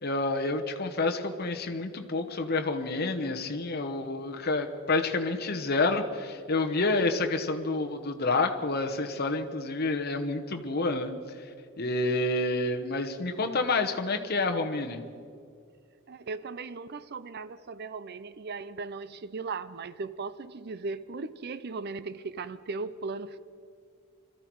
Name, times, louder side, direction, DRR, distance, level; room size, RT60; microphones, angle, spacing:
voice 1, 0.0-11.1 11.8-15.0, left 3 dB, 45° left, 1.1 m, -29 dB
voice 2, 16.1-23.4, right 4 dB, 50° right, 0.5 m, -37 dB
22.5 x 14.0 x 4.7 m
head